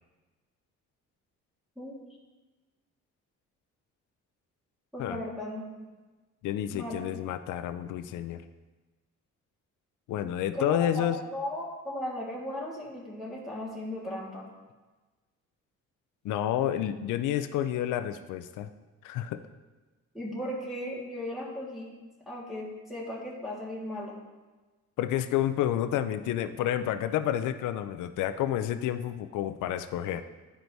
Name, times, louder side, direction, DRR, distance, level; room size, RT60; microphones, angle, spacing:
voice 1, 4.9-5.6 6.7-7.0 10.5-14.4 20.1-21.9 22.2-24.1, left 1 dB, ahead, -6 dB, 1.7 m, -36 dB
voice 2, 6.4-8.4 10.1-11.2 16.2-18.7 19.0-19.4 25.0-30.2, left 11 dB, 80° left, 9 dB, 0.5 m, -29 dB
11.5 x 4.5 x 2.7 m, 1.2 s
cardioid pair, 90°, 30 cm